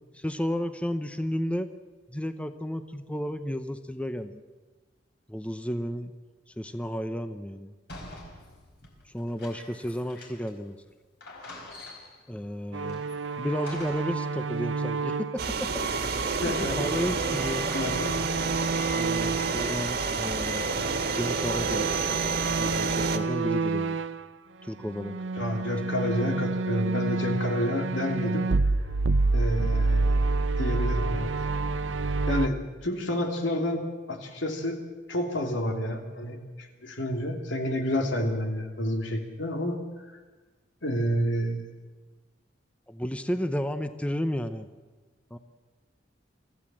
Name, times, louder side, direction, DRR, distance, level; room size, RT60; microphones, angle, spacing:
voice 1, 0.1-1.7 2.1-4.4 5.3-6.1 6.6-7.7 9.1-10.8 12.3-13.0 13.4-17.7 19.0-20.7 21.1-21.9 22.6-24.0 24.6-25.2 42.9-44.7 45.3-45.4, equal, 5° left, 9 dB, 0.7 m, -32 dB
sound 1, 7.9-10.6 10.9-11.0 11.2-12.3 12.9-14.2, left 2 dB, 65° left, 4.8 m, -46 dB
sound 2, 12.7-19.8 20.1-24.3 24.8-32.5, right 3 dB, 80° right, 0.7 m, -29 dB
sound 3, 15.4-23.2, right 4 dB, 60° right, 1.9 m, -29 dB
voice 2, 16.4-16.8 17.7-18.1 25.4-28.5 29.3-30.1 30.6-31.3 32.3-33.8 34.1-34.8 35.1-40.0 40.8-41.6, equal, 80° left, 3 dB, 2.9 m, -29 dB
24.0 x 15.0 x 7.5 m, 1.3 s
head